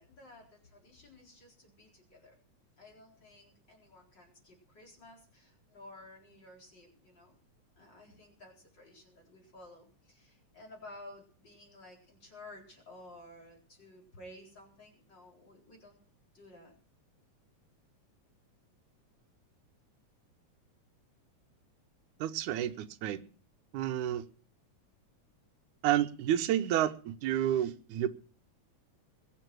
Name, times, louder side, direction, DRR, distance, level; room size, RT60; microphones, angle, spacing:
voice 1, 0.0-2.4 2.8-7.3 7.8-16.0 16.3-16.7, left 1 dB, 35° left, 4.8 m, -54 dB
voice 2, 22.2-23.2 23.7-24.2 25.8-28.1, right 11 dB, 90° right, 2.3 m, -30 dB
21.5 x 7.6 x 6.1 m
omnidirectional pair, 3.4 m